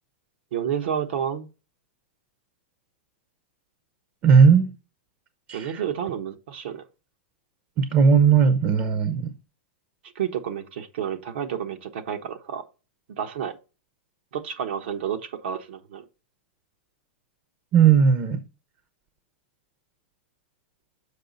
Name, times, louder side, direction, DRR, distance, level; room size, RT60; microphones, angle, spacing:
voice 1, 0.5-1.5 5.5-6.8 10.1-12.6 13.2-13.6 14.3-16.1, right 8 dB, 70° right, 1.1 m, -30 dB
voice 2, 4.2-4.7 5.5-5.8 7.8-9.3 17.7-18.4, right 6 dB, 35° right, 0.7 m, -17 dB
6.8 x 4.9 x 4.0 m
supercardioid pair, 150°, 6 cm